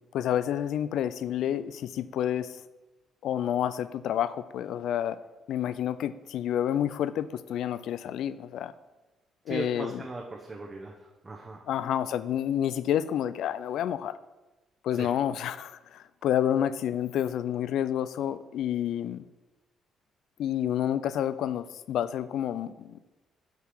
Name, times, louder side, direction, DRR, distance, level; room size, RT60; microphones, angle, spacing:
voice 1, 0.1-2.6 3.2-5.2 5.5-8.7 9.5-10.0 11.7-14.2 14.8-19.3 20.4-23.0, left 10 dB, 80° left, 15 dB, 0.4 m, -29 dB
voice 2, 9.5-11.6 14.9-15.1, right 2 dB, 30° right, 1 dB, 0.9 m, -38 dB
6.7 x 4.7 x 6.1 m, 1.1 s
cardioid pair, 90°, 0 cm